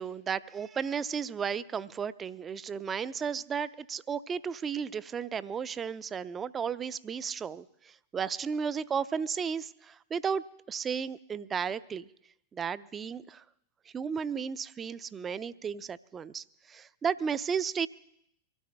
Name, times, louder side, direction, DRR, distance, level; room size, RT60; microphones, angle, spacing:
voice 1, 0.0-12.1 12.5-13.4 13.9-17.9, right 6 dB, 20° right, 16 dB, 0.6 m, -34 dB
25.0 x 16.5 x 2.3 m, 0.76 s
figure-of-eight pair, 90°, 0 cm